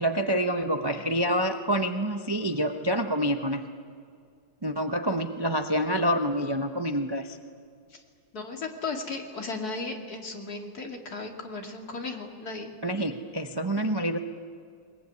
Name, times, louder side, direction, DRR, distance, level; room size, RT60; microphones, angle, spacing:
voice 1, 0.0-3.6 4.6-7.4 12.8-14.2, equal, 20° right, 6 dB, 0.6 m, -27 dB
voice 2, 8.3-12.7, left 3 dB, 55° left, 2 dB, 3.1 m, -36 dB
22.0 x 21.5 x 9.7 m, 2.2 s
omnidirectional pair, 2.0 m